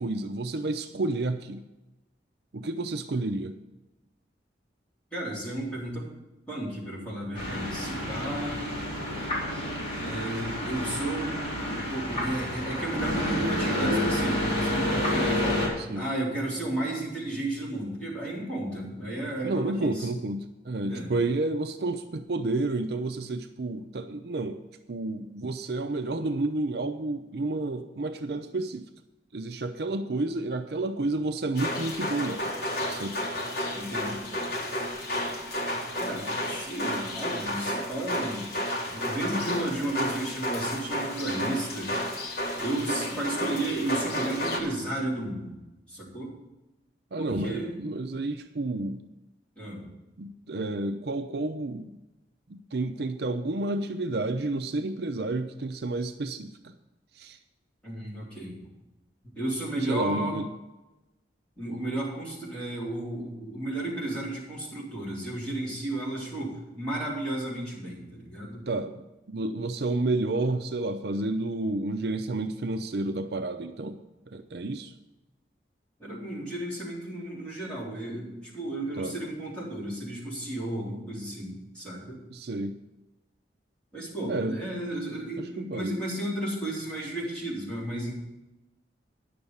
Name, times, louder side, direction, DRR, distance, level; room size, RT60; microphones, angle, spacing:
voice 1, 0.0-1.6 2.5-3.6 8.1-8.2 15.8-16.0 19.4-24.6 24.9-28.9 29.3-32.5 32.9-33.2 47.1-49.0 50.2-51.9 52.5-56.7 57.2-57.4 59.9-60.5 68.7-74.0 74.3-74.9 79.0-79.1 82.3-82.8 84.3-84.6 85.4-86.0, right 2 dB, 60° right, 8 dB, 0.5 m, -30 dB
voice 2, 5.1-6.0 6.5-8.8 10.0-15.7 16.0-20.1 20.8-21.1 33.7-34.3 36.0-38.5 38.9-41.9 42.6-45.6 45.9-46.3 47.2-47.7 49.6-49.9 57.8-58.6 59.4-60.4 61.6-68.7 76.0-82.2 83.9-88.1, right 1 dB, 5° left, -7 dB, 3.7 m, -33 dB
sound 1, 7.3-15.7, left 1 dB, 30° left, 4.3 m, -29 dB
sound 2, 31.6-44.6, equal, 55° left, 1.8 m, -32 dB
10.0 x 6.8 x 7.1 m, 1.0 s
head